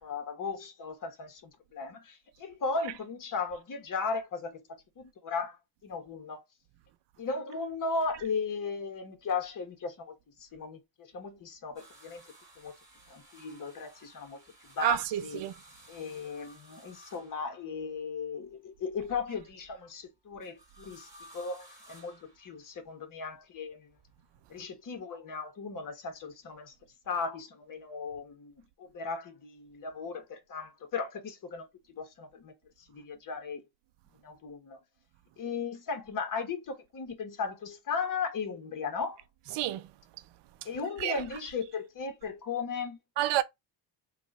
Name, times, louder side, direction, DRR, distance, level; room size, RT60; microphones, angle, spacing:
voice 1, 0.0-4.6 5.0-5.6 5.8-6.4 7.2-10.1 10.4-12.2 12.6-12.8 13.1-15.4 15.9-23.9 24.5-26.7 27.0-33.6 34.2-34.8 35.4-39.2 40.6-43.0, left 4 dB, 40° left, 1.4 m, -36 dB
sound 1, 11.8-18.0 20.4-22.9 23.9-24.7 26.1-26.2, right 1 dB, 5° right, 2.0 m, -57 dB
voice 2, 14.8-15.5 39.5-39.9 41.0-41.2 43.2-43.4, right 13 dB, 60° right, 0.7 m, -29 dB
3.0 x 2.5 x 4.0 m
supercardioid pair, 90°, 49 cm